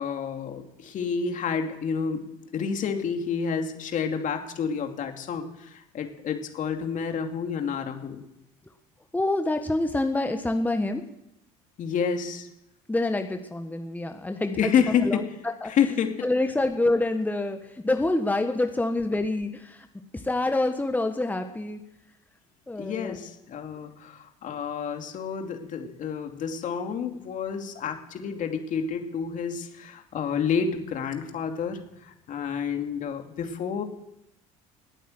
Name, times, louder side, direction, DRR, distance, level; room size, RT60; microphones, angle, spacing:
voice 1, 0.0-8.2 11.8-12.5 14.6-15.3 15.7-16.3 22.8-33.8, left 6 dB, 50° left, 5 dB, 2.6 m, -29 dB
voice 2, 9.1-11.1 12.9-14.7 15.0-15.2 15.6-15.7 16.2-19.9 20.1-21.8 22.7-23.2, left 2 dB, 10° left, 6 dB, 1.5 m, -26 dB
19.5 x 9.2 x 7.9 m, 0.86 s
hypercardioid pair, 70°, 16 cm